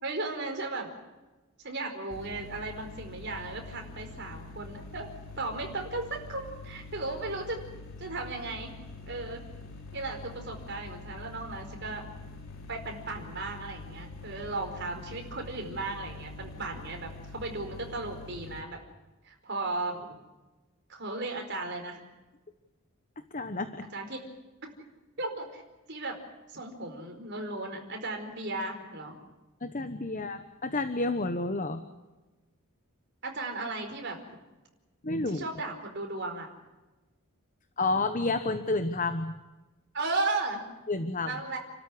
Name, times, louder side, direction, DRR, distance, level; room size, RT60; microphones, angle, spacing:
voice 1, 0.0-0.9 1.6-5.1 5.4-7.6 8.0-8.7 9.1-9.4 9.9-12.1 12.7-18.8 19.2-20.2 20.9-22.0 23.9-24.2 25.2-25.6 25.9-26.2 26.5-29.2 30.1-30.2 33.2-34.2 35.3-36.5 39.9-40.6 41.3-41.6, right 2 dB, 50° right, 3 dB, 4.8 m, -35 dB
sound 1, 2.1-18.6, left 3 dB, 65° left, 3.4 m, -45 dB
voice 2, 23.3-23.9 29.6-31.8 35.0-35.4 37.8-39.4 40.9-41.4, left 2 dB, 35° left, 9 dB, 1.1 m, -30 dB
30.0 x 13.0 x 9.8 m, 1.1 s
head